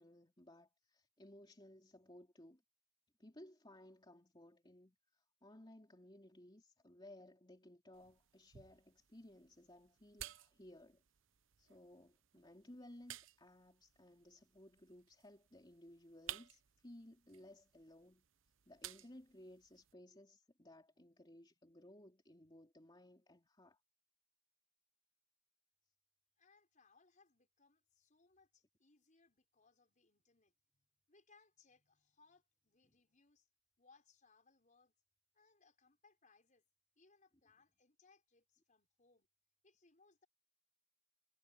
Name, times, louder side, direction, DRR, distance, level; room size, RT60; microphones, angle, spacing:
voice 1, 0.0-2.6 3.2-11.0 11.6-18.2 18.7-23.8 32.9-33.0, left 1 dB, 20° left, 3.1 m, -59 dB
sound 1, 7.9-19.9, right 12 dB, 70° right, 0.8 m, -56 dB
voice 2, 26.4-33.5 33.8-34.9 35.3-36.7 37.0-39.3 39.6-40.3, left 4 dB, 40° left, 5.6 m, -71 dB
head